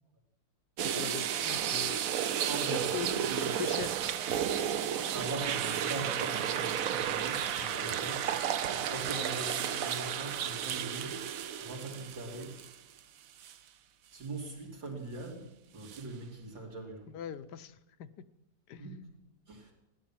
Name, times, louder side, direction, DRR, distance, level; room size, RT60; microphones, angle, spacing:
voice 1, 0.8-4.0 17.1-18.1 18.7-18.9, left 10 dB, 70° left, 13 dB, 1.3 m, -42 dB
sound 1, 0.8-13.0 13.4-13.5 15.9-16.0, right 9 dB, 60° right, 0.9 m, -33 dB
voice 2, 2.4-3.5 5.1-8.3 8.7-11.2 11.6-12.6 14.1-17.1 18.8-19.0 19.5-19.7, right 2 dB, 80° right, 0 dB, 3.9 m, -41 dB
17.0 x 11.5 x 7.4 m, 0.89 s
omnidirectional pair, 2.0 m